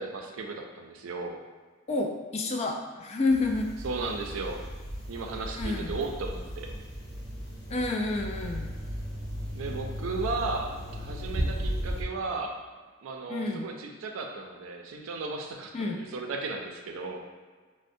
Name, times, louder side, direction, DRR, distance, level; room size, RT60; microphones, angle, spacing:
voice 1, 0.0-1.4 3.8-4.7 5.1-6.7 9.5-12.6 13.0-17.2, right 3 dB, 85° right, 2 dB, 0.4 m, -35 dB
voice 2, 1.9-3.7 5.6-6.0 7.7-8.7 13.3-13.7 15.7-16.0, left 3 dB, 30° left, 2 dB, 0.3 m, -29 dB
sound 1, 3.3-12.0, equal, 55° left, 0.9 m, -36 dB
4.2 x 2.1 x 2.6 m, 1.5 s
head